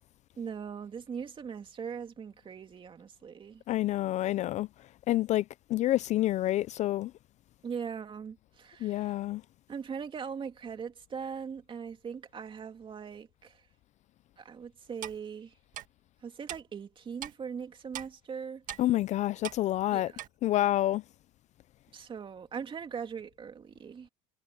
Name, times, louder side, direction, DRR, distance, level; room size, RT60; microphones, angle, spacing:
voice 1, 0.4-3.6 7.6-9.1 9.7-13.6 14.4-15.6 16.2-18.6 19.9-20.2 21.9-24.1, right 6 dB, 25° right, 2.7 m, -40 dB
voice 2, 3.7-4.7 5.1-5.4 5.7-7.1 8.8-9.4 18.8-20.1 20.4-21.0, left 14 dB, 40° left, 0.4 m, -28 dB
Clock, 15.0-15.2 15.7-15.9 16.5-16.6 17.2-17.3 17.9-18.1 18.7-18.8 19.4-19.6 20.2-20.3, right 12 dB, 45° right, 1.7 m, -39 dB
supercardioid pair, 125°, 19 cm